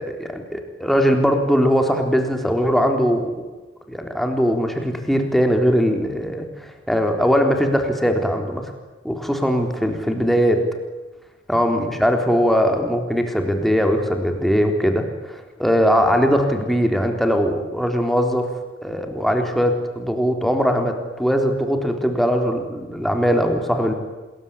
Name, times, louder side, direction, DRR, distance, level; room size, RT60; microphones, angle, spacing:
voice 1, 0.0-3.4 3.9-8.7 9.0-10.6 11.5-18.5 18.8-23.9, equal, ahead, 4 dB, 3.8 m, -20 dB
28.0 x 21.5 x 9.9 m, 1.2 s
head